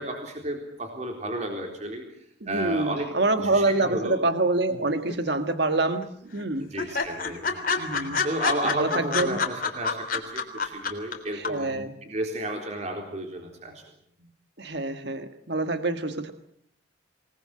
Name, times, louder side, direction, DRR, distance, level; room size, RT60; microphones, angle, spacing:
voice 1, 0.0-2.0 2.5-3.1 3.4-4.2 6.6-7.5 8.2-11.7 12.0-13.8, right 1 dB, 35° right, 3 dB, 3.8 m, -32 dB
voice 2, 2.4-6.7 7.8-8.2 8.7-9.4 11.3-11.9 14.6-16.3, right 2 dB, 55° right, 8 dB, 1.6 m, -26 dB
sound 1, 5.1-5.7 6.0-6.1 6.4-6.5 6.8-11.1 11.4-11.5, left 5 dB, 45° left, 3.5 m, -27 dB
27.0 x 19.5 x 7.7 m, 0.67 s
head